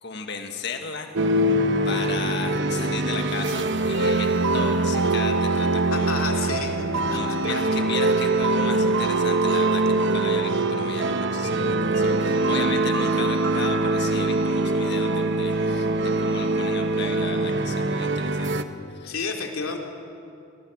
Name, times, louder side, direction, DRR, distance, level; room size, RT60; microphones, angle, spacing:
voice 1, 0.0-1.1 1.8-6.5 7.0-18.5 18.9-19.1, left 5 dB, 55° left, 5 dB, 1.6 m, -35 dB
sound 1, 1.1-18.6, right 2 dB, 55° right, 0.9 m, -23 dB
voice 2, 5.9-6.8 7.1-7.5 12.2-12.7 19.1-19.8, left 4 dB, 85° left, 2 dB, 2.8 m, -31 dB
24.5 x 19.5 x 6.3 m, 2.5 s
head